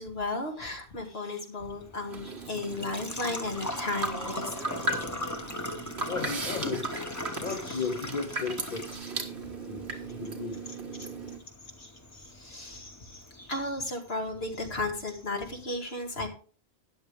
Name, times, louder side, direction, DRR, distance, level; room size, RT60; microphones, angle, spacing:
voice 1, 0.0-5.1 7.7-7.9 11.0-11.1 11.8-16.3, left 2 dB, 75° left, 2.3 m, -35 dB
Engine / Trickle dribble / Fill (with liquid), 1.7-13.7, left 1 dB, 15° left, 1.0 m, -40 dB
sound 1, 2.1-11.4, right 3 dB, 85° right, 1.9 m, -37 dB
voice 2, 6.1-6.9 7.4-8.9 9.7-9.8 10.1-10.6, left 4 dB, 45° left, 1.0 m, -34 dB
12.5 x 9.7 x 3.4 m
omnidirectional pair, 1.1 m